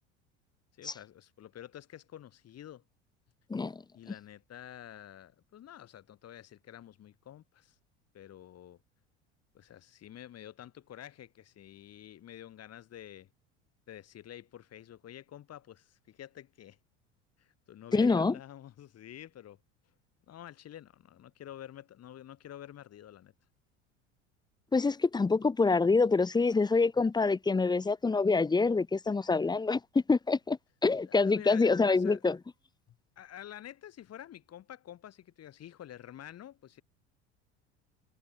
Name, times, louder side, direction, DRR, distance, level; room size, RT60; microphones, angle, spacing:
voice 1, 0.8-2.8 3.9-7.8 8.1-8.8 9.5-13.3 13.9-16.8 17.4-19.6 20.3-23.3 31.0-32.3 33.2-36.8, left 11 dB, 45° left, 4.9 m, -49 dB
voice 2, 3.5-3.8 17.9-18.3 24.7-32.4, left 4 dB, 10° left, 0.7 m, -26 dB
hypercardioid pair, 80°, 35 cm